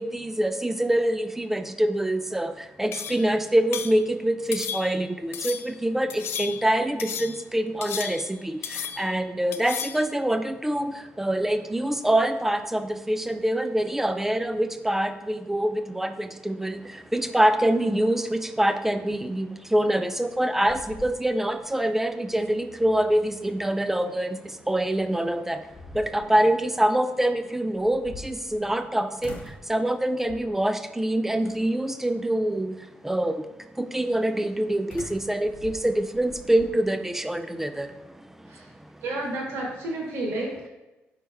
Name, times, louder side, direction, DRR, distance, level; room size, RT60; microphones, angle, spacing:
voice 1, 0.0-39.0, right 1 dB, 5° right, 9 dB, 0.3 m, -25 dB
sound 1, 2.9-3.3 3.7-4.0 4.5-5.0 5.3-5.7 6.1-6.7 7.0-7.4 7.8-8.4 8.6-9.2 9.5-10.1, left 8 dB, 75° left, 0.3 m, -34 dB
sound 2, 20.0-20.4 20.7-21.7 22.1-22.2 24.8-24.9 25.5-26.4 27.7-28.9 29.2-29.7 30.3-30.7 31.4-31.9 34.9-36.7, left 3 dB, 55° left, 0.7 m, -44 dB
voice 2, 39.0-40.7, right 1 dB, 80° right, -1 dB, 1.0 m, -31 dB
4.6 x 3.1 x 3.5 m, 1.1 s
cardioid pair, 90°, 4 cm